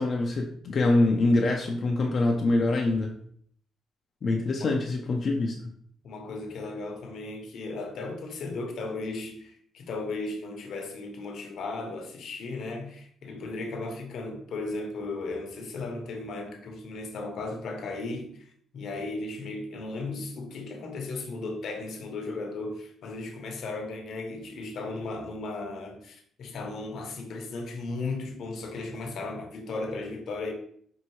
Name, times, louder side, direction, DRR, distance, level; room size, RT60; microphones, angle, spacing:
voice 1, 0.0-3.1 4.2-5.7, left 2 dB, 50° left, 0.5 m, -25 dB
voice 2, 4.3-4.8 6.0-30.5, left 3 dB, 70° left, 0.8 m, -36 dB
5.4 x 2.6 x 3.0 m
cardioid pair, 90°, 0 cm